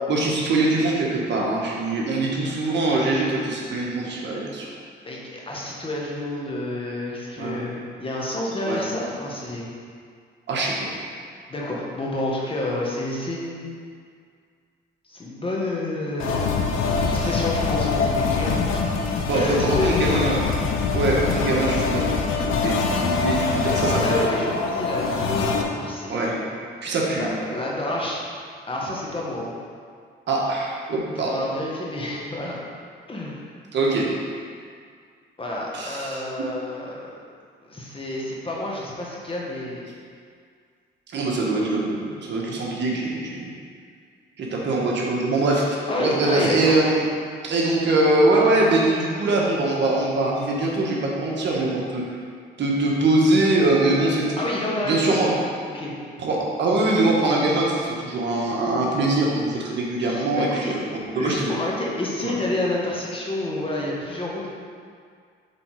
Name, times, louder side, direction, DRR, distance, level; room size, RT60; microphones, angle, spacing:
voice 1, 0.1-4.7 7.4-7.7 8.6-8.8 10.5-10.9 17.2-17.3 19.3-20.4 20.9-22.1 22.4-24.0 26.1-26.4 26.8-27.3 30.3-31.4 33.7-34.2 35.7-36.3 41.1-43.4 44.4-47.0 47.4-52.0 52.6-54.3 54.8-55.3 56.2-61.5 62.2-62.3, right 2 dB, 65° right, -3 dB, 1.4 m, -23 dB
voice 2, 5.0-9.7 11.5-13.7 15.1-16.4 17.0-18.5 18.9-20.2 23.9-26.4 27.1-28.2 28.7-29.5 31.2-32.6 33.1-33.4 35.4-37.1 37.7-39.9 41.4-41.6 45.9-46.8 54.4-55.4 55.7-55.9 60.0-60.8 61.2-64.5, left 1 dB, 25° left, -4 dB, 1.5 m, -29 dB
sound 1, 16.2-25.6, left 4 dB, 85° left, 0.7 m, -24 dB
7.5 x 3.8 x 4.8 m, 2.1 s
cardioid pair, 90°, 20 cm